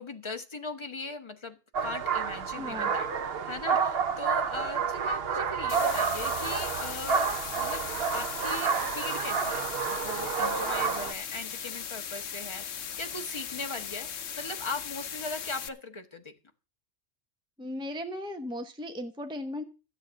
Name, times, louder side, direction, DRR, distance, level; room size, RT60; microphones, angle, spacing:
voice 1, 0.0-3.1 3.4-7.8 8.1-9.6 9.9-16.3, left 3 dB, 25° left, 6 dB, 1.4 m, -39 dB
sound 1, 1.7-11.1, right 6 dB, 60° right, 1.1 m, -29 dB
voice 2, 2.5-3.0 17.6-19.6, left 1 dB, 5° right, 6 dB, 1.0 m, -36 dB
sound 2, 5.7-15.7, left 8 dB, 75° left, 1.1 m, -38 dB
13.5 x 7.4 x 6.4 m, 0.33 s
omnidirectional pair, 1.2 m